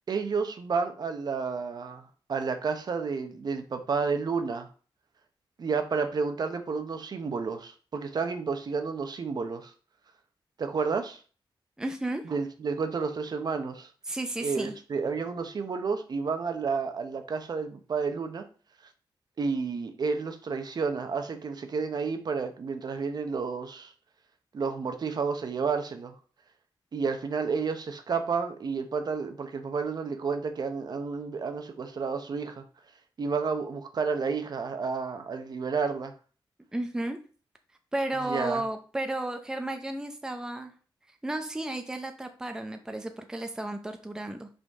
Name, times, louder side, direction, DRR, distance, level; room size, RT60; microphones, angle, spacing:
voice 1, 0.1-4.7 5.6-9.7 10.6-11.2 12.2-13.9 14.4-18.4 19.4-23.9 24.5-26.2 26.9-32.6 33.2-36.1 38.2-38.6, right 5 dB, 50° right, 7 dB, 0.9 m, -31 dB
voice 2, 11.8-12.2 14.1-14.8 36.7-37.2 37.9-40.7 41.2-44.5, right 1 dB, 10° right, 6 dB, 0.6 m, -33 dB
5.2 x 5.1 x 3.6 m, 0.39 s
wide cardioid pair, 145°, 9 cm